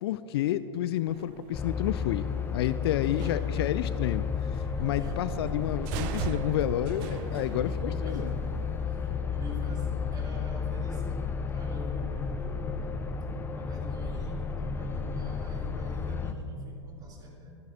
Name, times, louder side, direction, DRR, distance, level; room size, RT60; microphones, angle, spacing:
voice 1, 0.0-2.3 2.5-4.3 4.5-8.3, left 12 dB, 55° left, 14 dB, 0.4 m, -30 dB
sound 1, 1.1-8.9, right 10 dB, 45° right, 0.5 m, -43 dB
sound 2, 1.5-16.3, left 5 dB, 15° left, 0.6 m, -32 dB
voice 2, 3.0-3.8 5.0-5.1 7.9-8.3 8.8-11.2 11.5-12.9 13.5-17.5, equal, 25° right, -2 dB, 3.0 m, -43 dB
23.5 x 10.5 x 2.8 m, 2.8 s
figure-of-eight pair, 95°, 16 cm